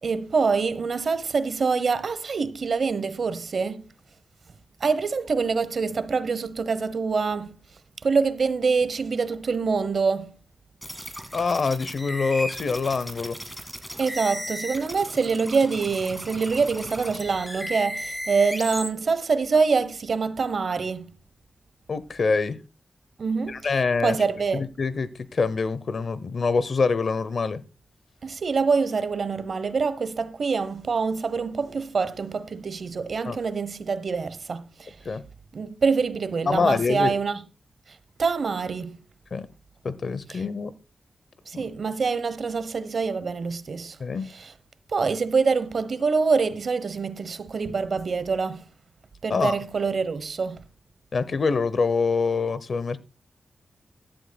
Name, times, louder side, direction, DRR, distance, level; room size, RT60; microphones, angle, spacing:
voice 1, 0.0-3.8 4.8-7.6 8.0-10.4 14.0-21.1 23.2-24.6 28.2-35.0 35.5-37.4 38.2-39.0 40.3-40.4 41.5-44.0 44.3-44.5 44.9-48.6 49.2-50.6, right 5 dB, 55° right, 0.9 m, -25 dB
sound 1, 10.8-18.9, equal, 5° left, 1.9 m, -36 dB
voice 2, 11.3-13.4 21.9-22.6 23.5-24.2 24.5-27.6 33.2-33.4 35.0-35.2 36.5-37.1 39.3-39.5 39.8-40.7 41.5-41.7 44.0-44.3 49.3-49.6 51.1-53.0, left 4 dB, 50° left, 0.7 m, -25 dB
17.0 x 11.5 x 2.2 m
wide cardioid pair, 155°, 0 cm